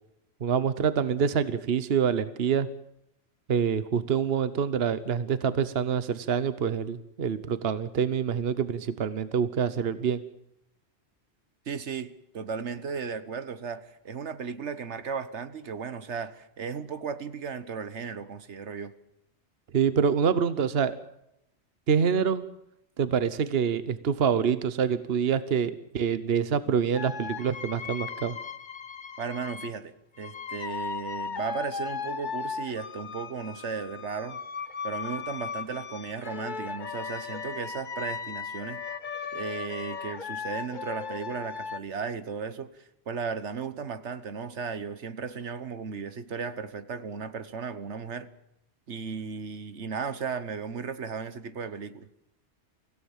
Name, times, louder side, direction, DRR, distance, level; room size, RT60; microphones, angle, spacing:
voice 1, 0.4-2.7 3.5-10.2 19.7-21.0 21.9-22.4 23.0-28.4, right 7 dB, 60° right, 13 dB, 1.2 m, -26 dB
voice 2, 11.7-18.9 29.2-34.4 34.8-38.8 39.3-48.3 48.9-52.1, right 6 dB, 80° right, 12 dB, 1.5 m, -35 dB
sound 1, 26.9-29.8 30.2-41.8, left 6 dB, 45° left, 1.0 m, -37 dB
24.5 x 16.0 x 7.3 m, 0.81 s
omnidirectional pair, 1.2 m